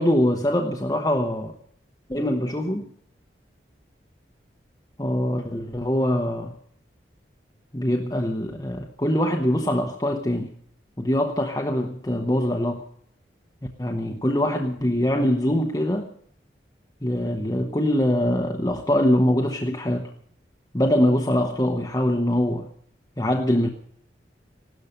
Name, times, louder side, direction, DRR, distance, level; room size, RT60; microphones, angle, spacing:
voice 1, 0.0-1.5 2.1-2.9 5.0-6.5 7.7-10.5 11.0-12.8 13.8-16.1 17.0-20.1 20.7-22.7 23.2-23.7, left 1 dB, 20° left, 2 dB, 1.0 m, -23 dB
16.5 x 12.5 x 6.7 m, 0.66 s
head